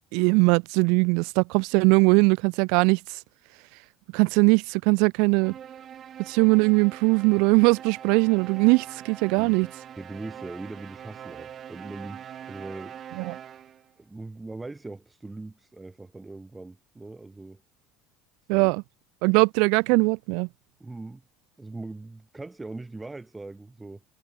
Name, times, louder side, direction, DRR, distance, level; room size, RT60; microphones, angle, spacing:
voice 1, 0.0-3.2 4.1-5.6 6.3-9.7 13.1-13.4 18.5-18.8 19.2-20.5, right 32 dB, 70° right, 0.8 m, -21 dB
sound 1, 5.4-13.9, right 9 dB, 30° right, 4.0 m, -43 dB
voice 2, 10.0-13.0 14.0-17.6 18.5-18.7 20.8-21.2 21.6-24.0, right 2 dB, 10° right, 2.8 m, -40 dB
cardioid pair, 150°, 0 cm